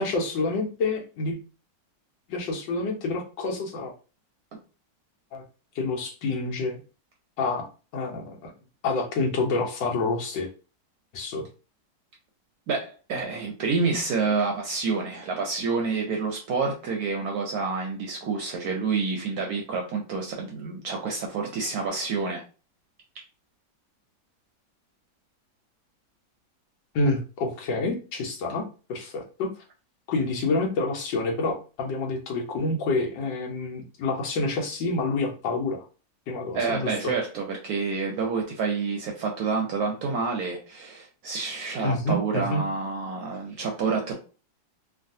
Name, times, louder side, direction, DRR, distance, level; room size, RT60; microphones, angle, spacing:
voice 1, 0.0-1.4 2.3-3.9 5.3-5.4 5.8-6.8 7.4-7.7 7.9-8.5 8.8-10.5 11.1-11.4 26.9-29.5 30.1-35.8 36.3-37.1 41.8-42.6, left 3 dB, 80° left, 2 dB, 1.4 m, -28 dB
voice 2, 12.7-22.4 36.5-44.1, right 4 dB, 70° right, 1 dB, 0.9 m, -28 dB
3.2 x 2.3 x 2.6 m, 0.34 s
omnidirectional pair, 2.0 m